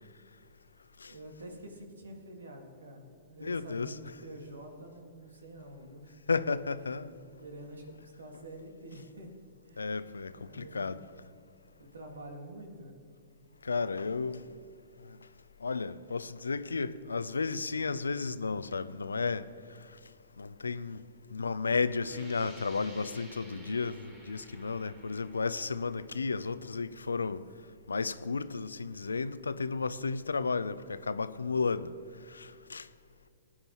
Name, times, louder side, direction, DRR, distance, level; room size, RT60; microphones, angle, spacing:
voice 1, 1.1-6.2 7.4-9.3 9.6-9.9 10.3-11.0 11.8-13.0, right 1 dB, 80° right, 2.0 m, -47 dB
voice 2, 3.4-3.9 6.3-7.1 9.8-11.0 13.6-14.4 15.6-19.4 20.4-21.0 21.3-27.4 27.9-31.9 32.3-32.8, left 4 dB, 85° left, 0.4 m, -33 dB
sound 1, 22.0-27.5, right 2 dB, 30° right, 2.9 m, -54 dB
19.5 x 9.8 x 3.0 m
hypercardioid pair, 115°, 0 cm